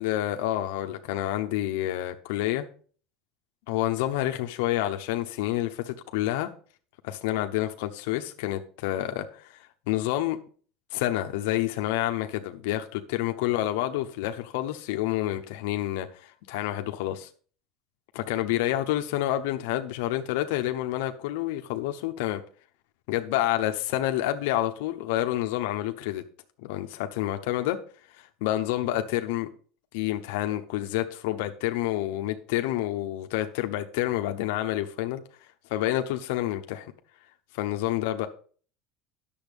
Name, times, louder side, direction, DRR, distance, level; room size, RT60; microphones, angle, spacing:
voice 1, 0.0-2.6 3.7-6.5 7.0-10.4 10.9-17.3 18.1-22.4 23.1-26.2 26.6-27.8 28.2-29.5 29.9-35.2 35.7-36.9 37.5-38.3, left 14 dB, 80° left, 6 dB, 0.8 m, -28 dB
10.5 x 7.1 x 5.2 m, 0.43 s
cardioid pair, 150°, 0 cm